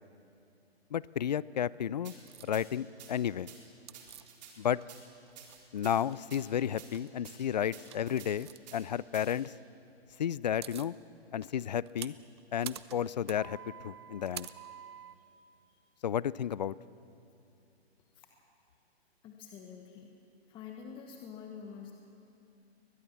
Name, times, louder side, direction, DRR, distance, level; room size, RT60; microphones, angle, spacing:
voice 1, 0.9-2.1 2.4-3.5 4.6-4.8 5.7-9.5 10.2-10.9 11.3-12.1 12.5-14.5 16.0-16.8, left 9 dB, 40° left, 21 dB, 0.4 m, -32 dB
sound 1, 2.0-2.2 2.5-2.6 3.0-3.1 3.5-3.6 3.9-4.5 4.9-5.0 5.4-5.9 6.3-6.4 6.8-6.9 7.2-7.4 7.7-8.3 8.7-8.8 9.1-9.4, right 9 dB, 40° right, 4.2 m, -50 dB
sound 2, 2.3-2.5 3.9-5.0 5.3-6.2 6.7-7.1 7.8-8.6 10.1-10.2 10.4-10.9 11.4-15.2, right 10 dB, 25° right, 0.4 m, -47 dB
voice 2, 19.2-20.1 20.5-21.9, left 7 dB, 15° left, 3 dB, 1.2 m, -47 dB
22.0 x 20.0 x 7.3 m, 2.8 s
figure-of-eight pair, 135°, 32 cm